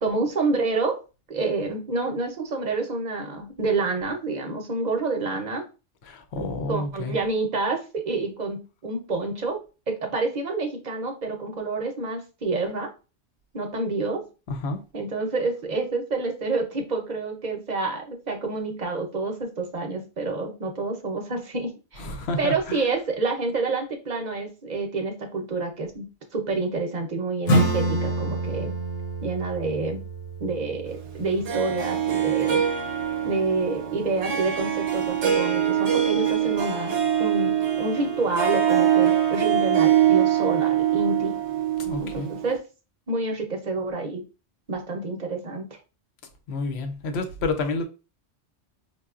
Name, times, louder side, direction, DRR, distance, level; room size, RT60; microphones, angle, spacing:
voice 1, 0.0-1.0 1.3-5.7 6.3-9.6 9.9-12.9 13.5-14.3 14.9-22.1 22.4-28.7 29.2-30.0 30.4-32.6 33.2-41.3 42.0-42.6 43.1-44.2 44.7-45.7, right 3 dB, 45° right, 0.7 m, -28 dB
voice 2, 6.1-7.1 14.5-14.8 22.0-22.8 41.8-42.3 46.5-47.8, left 3 dB, 70° left, 0.9 m, -29 dB
Acoustic guitar / Strum, 27.5-32.7, right 2 dB, 90° left, 1.1 m, -28 dB
Harp, 31.5-42.6, right 10 dB, 80° right, 1.0 m, -23 dB
5.3 x 2.2 x 2.4 m
omnidirectional pair, 1.2 m